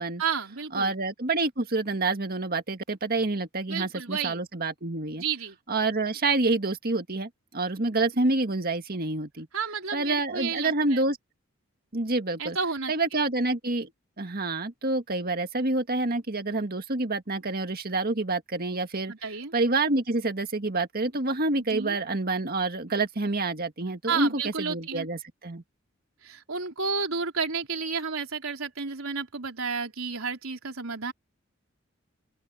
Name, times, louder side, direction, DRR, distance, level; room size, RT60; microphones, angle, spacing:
voice 1, 0.2-0.9 3.7-4.4 5.2-5.6 9.5-11.0 12.4-12.9 19.1-19.5 21.7-22.0 24.1-25.1 26.2-31.1, right 5 dB, 85° right, 4.0 m, -31 dB
voice 2, 0.7-5.2 5.7-9.5 9.9-11.2 11.9-12.6 12.9-13.9 14.2-19.1 19.5-25.6, right 2 dB, 45° right, 1.9 m, -27 dB
open air
head